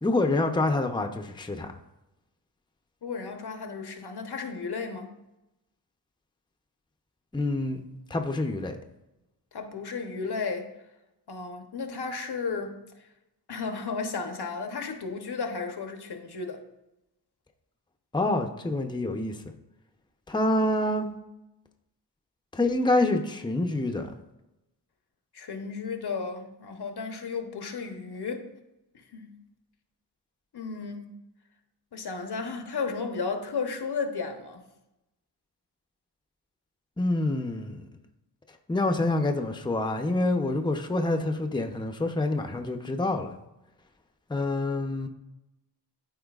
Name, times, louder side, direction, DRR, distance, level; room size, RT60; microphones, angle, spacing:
voice 1, 0.0-1.7 7.3-7.8 8.1-8.8 18.1-19.4 20.3-21.1 22.5-24.1 37.0-37.8 38.7-43.3 44.3-45.1, left 2 dB, 10° left, 0.7 m, -27 dB
voice 2, 3.0-5.1 9.5-10.7 11.3-12.8 13.5-16.6 25.3-28.5 29.1-29.3 30.5-31.1 31.9-34.6, left 4 dB, 65° left, 1.0 m, -33 dB
13.0 x 4.4 x 2.4 m
cardioid pair, 65°, 42 cm